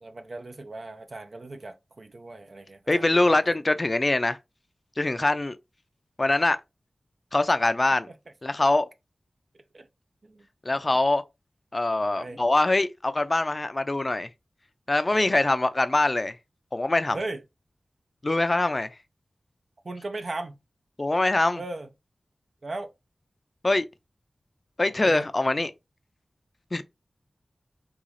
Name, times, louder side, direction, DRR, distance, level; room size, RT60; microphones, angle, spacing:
voice 1, 0.0-3.6 8.1-8.2 9.7-9.9 10.2-10.4 10.7-11.0 12.0-12.4 15.1-15.4 17.1-17.4 19.8-20.6 21.5-21.9 22.6-22.9 24.9-25.3, right 2 dB, 65° right, 0.5 m, -38 dB
voice 2, 2.9-4.4 5.0-5.6 6.2-6.6 7.3-8.1 8.4-8.9 10.6-11.2 11.7-14.3 14.9-16.4 16.7-17.2 18.2-18.9 21.0-21.6 23.6-23.8 24.8-25.7 26.7-26.8, left 2 dB, 40° left, 0.4 m, -23 dB
3.7 x 2.3 x 3.1 m
wide cardioid pair, 55°, 0 cm